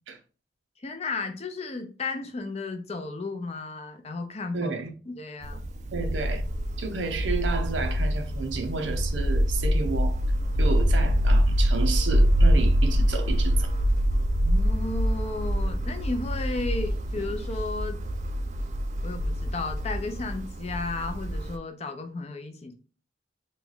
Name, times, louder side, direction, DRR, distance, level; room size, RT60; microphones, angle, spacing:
voice 1, 0.8-4.7 5.1-5.7 14.4-18.0 19.0-22.7, left 3 dB, 35° left, 0.5 m, -34 dB
voice 2, 4.5-4.9 5.9-6.4 6.8-10.2 10.6-13.7, right 4 dB, 90° right, 0.6 m, -31 dB
sound 1, 5.4-21.6, equal, 40° right, 0.3 m, -25 dB
3.1 x 2.2 x 3.7 m
head